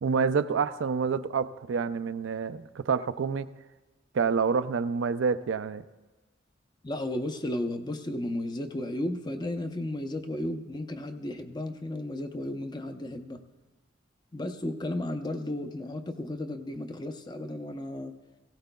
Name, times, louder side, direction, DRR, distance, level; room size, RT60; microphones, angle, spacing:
voice 1, 0.0-3.5 4.1-5.8, right 5 dB, 85° right, 12 dB, 0.4 m, -28 dB
voice 2, 6.8-13.4 14.3-18.1, left 1 dB, 25° left, 7 dB, 0.6 m, -34 dB
17.5 x 16.0 x 2.3 m, 1.2 s
head